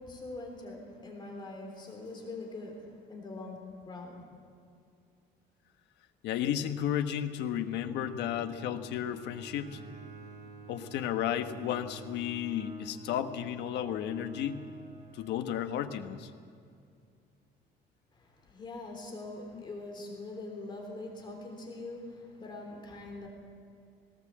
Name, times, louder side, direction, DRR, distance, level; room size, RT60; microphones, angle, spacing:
voice 1, 0.0-4.2 18.1-23.3, left 2 dB, 25° left, 1 dB, 3.5 m, -43 dB
voice 2, 6.2-9.8 10.7-14.6 15.1-16.3 19.5-19.6, left 10 dB, 80° left, 9 dB, 1.2 m, -33 dB
Bowed string instrument, 7.6-15.8, right 2 dB, 40° right, 4.9 m, -48 dB
19.0 x 18.5 x 7.5 m, 2.4 s
cardioid pair, 160°, 18 cm